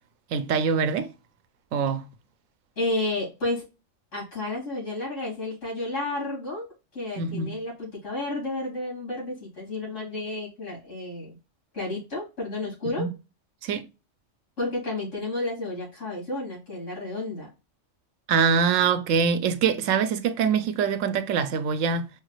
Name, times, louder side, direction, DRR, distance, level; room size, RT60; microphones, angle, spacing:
voice 1, 0.3-1.1 1.7-2.1 7.2-7.5 13.0-13.1 13.6-13.8 18.3-22.1, right 6 dB, 85° right, 1.0 m, -24 dB
voice 2, 2.8-3.6 4.1-6.7 6.9-11.4 11.7-13.1 14.6-17.5, left 2 dB, 85° left, 3.0 m, -31 dB
5.1 x 2.4 x 3.0 m
omnidirectional pair, 1.3 m